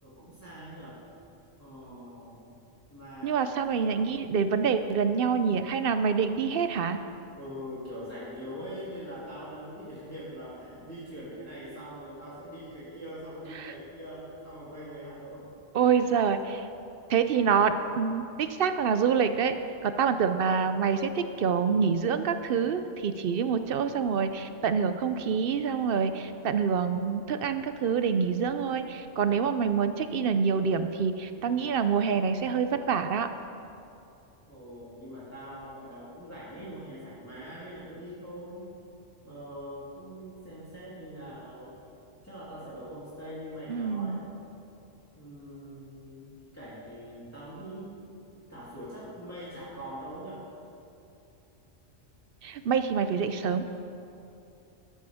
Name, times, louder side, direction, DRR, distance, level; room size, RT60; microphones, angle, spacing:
voice 1, 0.0-1.0 1.6-2.4 2.9-3.7 7.4-16.0 34.5-38.7 39.2-41.8 42.2-44.3 45.2-47.9 48.5-50.4, equal, 15° left, -11 dB, 2.7 m, -43 dB
voice 2, 3.2-7.0 13.5-13.7 15.7-16.7 17.1-19.6 19.8-33.3 43.7-44.2 52.4-53.6, right 6 dB, 60° right, 9 dB, 0.7 m, -26 dB
13.0 x 12.0 x 3.5 m, 2.7 s
omnidirectional pair, 1.2 m